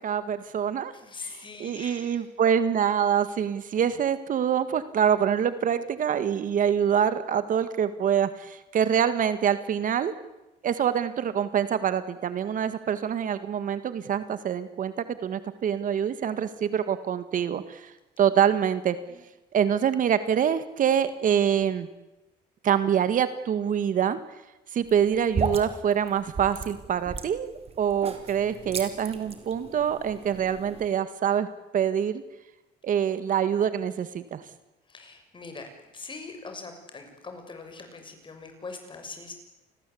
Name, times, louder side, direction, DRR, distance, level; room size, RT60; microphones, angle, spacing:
voice 1, 0.0-0.9 1.6-10.1 10.6-14.9 15.2-19.0 19.5-21.9 22.6-24.2 24.7-31.5 31.7-32.2 32.8-34.4, right 8 dB, 50° right, 12 dB, 1.9 m, -25 dB
voice 2, 0.9-2.3 18.8-19.2 34.9-39.3, left 3 dB, 30° left, 6 dB, 7.0 m, -42 dB
sound 1, 24.8-30.9, right 5 dB, 35° right, 4.2 m, -35 dB
29.0 x 20.5 x 8.6 m, 0.98 s
cardioid pair, 110°, 17 cm